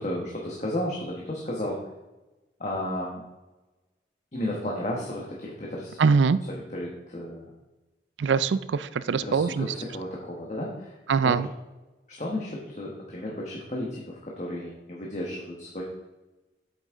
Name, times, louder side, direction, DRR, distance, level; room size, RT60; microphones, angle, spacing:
voice 1, 0.0-1.8 2.6-3.2 4.3-6.0 6.5-7.5 9.2-11.0 11.2-11.4 12.1-15.8, left 1 dB, 40° left, -3 dB, 1.3 m, -33 dB
voice 2, 6.0-6.4 8.2-9.7 11.1-11.5, right 5 dB, 90° right, 15 dB, 0.4 m, -22 dB
8.3 x 8.2 x 3.7 m, 1.1 s
head